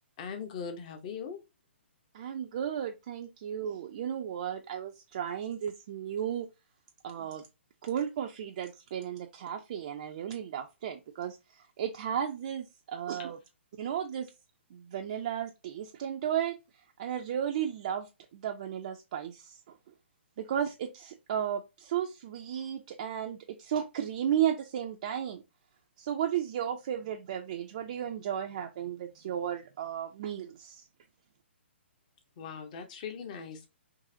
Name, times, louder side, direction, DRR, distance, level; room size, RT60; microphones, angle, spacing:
voice 1, 0.2-1.4 13.2-13.3 32.4-33.7, left 6 dB, 40° left, 0.8 m, -40 dB
voice 2, 2.1-6.5 7.0-7.4 7.8-11.4 11.8-13.4 13.8-14.3 14.7-16.5 17.0-19.6 20.4-25.4 26.0-30.8, right 9 dB, 40° right, 0.4 m, -34 dB
3.9 x 2.6 x 2.6 m
figure-of-eight pair, 125°, 6 cm